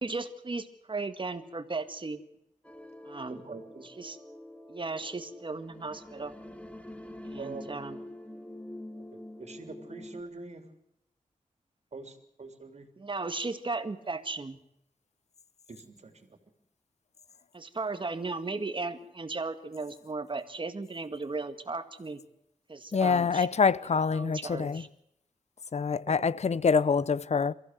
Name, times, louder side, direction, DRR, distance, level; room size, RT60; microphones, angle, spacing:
voice 1, 0.0-2.2 3.0-3.4 4.0-4.2 4.7-6.3 7.2-8.0 13.0-14.6 17.5-22.2 22.7-23.5 24.1-24.9, right 3 dB, 40° right, 1.9 m, -36 dB
sound 1, 2.6-10.2, left 1 dB, 10° left, 2.0 m, -46 dB
voice 2, 3.3-3.9 7.4-7.7 9.1-10.7 11.9-12.9 15.7-16.4 26.1-26.3, right 3 dB, 55° right, 3.5 m, -44 dB
voice 3, 22.9-24.8 25.7-27.5, left 5 dB, 55° left, 0.7 m, -25 dB
23.5 x 15.0 x 8.0 m
cardioid pair, 70°, 13 cm